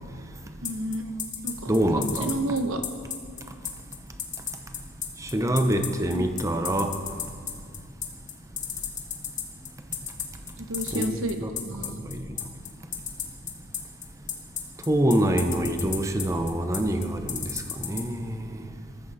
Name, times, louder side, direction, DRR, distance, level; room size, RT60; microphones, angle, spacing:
sound 1, 0.6-18.0, left 9 dB, 40° left, 1.4 m, -32 dB
voice 1, 0.6-1.1 1.4-1.7 1.9-2.8 6.1-6.2 10.6-12.0, right 1 dB, 70° right, 7 dB, 1.1 m, -31 dB
voice 2, 1.7-2.4 5.2-6.9 10.9-11.5 12.1-12.2 14.9-17.5 17.8-18.4, right 1 dB, 15° right, 6 dB, 0.8 m, -25 dB
19.5 x 14.0 x 4.2 m, 2.2 s
head